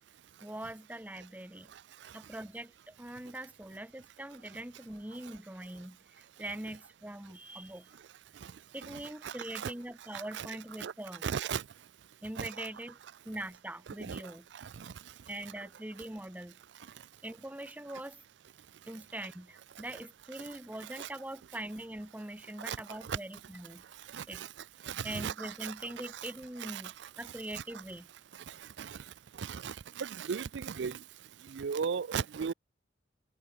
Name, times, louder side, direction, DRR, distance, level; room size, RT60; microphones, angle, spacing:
voice 1, 0.4-1.7 2.1-7.9 8.7-11.3 12.2-13.0 13.2-14.4 15.3-16.6 17.2-18.2 18.9-23.8 24.3-24.4 25.0-28.1, right 1 dB, 10° right, 1.0 m, -43 dB
voice 2, 8.8-9.7 10.1-10.9 11.2-11.6 12.4-12.7 14.0-14.2 14.5-14.9 21.0-21.1 22.6-23.2 24.1-24.5 24.8-25.9 26.1-26.3 26.6-26.8 27.5-27.6 28.5-29.0 29.4-31.0 31.5-32.5, right 7 dB, 65° right, 0.4 m, -37 dB
open air
head